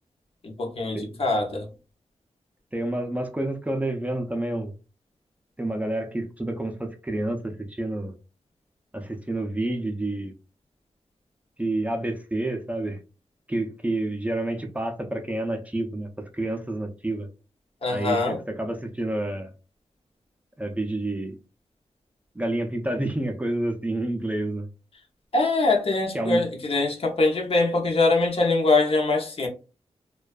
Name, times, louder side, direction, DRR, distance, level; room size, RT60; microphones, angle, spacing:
voice 1, 0.4-1.7 17.8-18.4 25.3-29.5, left 3 dB, 60° left, 1 dB, 0.7 m, -23 dB
voice 2, 2.7-4.7 5.6-8.1 8.9-10.3 11.6-13.0 13.5-17.3 17.9-19.5 20.6-21.4 22.3-24.7 26.1-26.4, right 1 dB, 10° right, 4 dB, 0.4 m, -29 dB
2.5 x 2.2 x 2.3 m, 0.33 s
wide cardioid pair, 85°, 11 cm